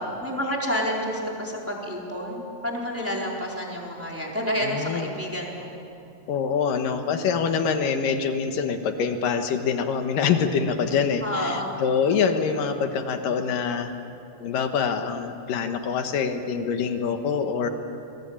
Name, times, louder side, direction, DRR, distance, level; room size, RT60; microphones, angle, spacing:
voice 1, 0.2-5.7 11.2-11.8, equal, 5° right, -2 dB, 3.4 m, -29 dB
voice 2, 4.6-5.1 6.3-13.9 14.4-17.7, left 6 dB, 65° left, 6 dB, 2.4 m, -25 dB
29.5 x 22.0 x 8.9 m, 2.8 s
omnidirectional pair, 5.2 m